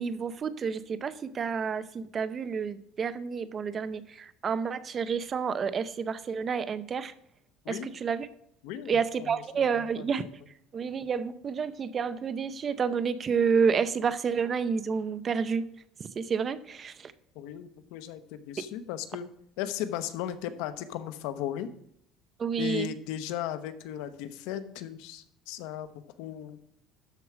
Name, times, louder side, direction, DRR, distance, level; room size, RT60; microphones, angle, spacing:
voice 1, 0.0-7.1 7.7-8.3 8.9-10.3 10.7-15.6 16.2-17.1 22.4-22.9, right 6 dB, 30° right, 14 dB, 0.6 m, -29 dB
voice 2, 8.6-9.9 17.3-19.3 19.6-21.7 22.6-26.6, left 11 dB, 80° left, 11 dB, 0.9 m, -36 dB
12.5 x 4.8 x 6.1 m, 0.73 s
cardioid pair, 140°, 0 cm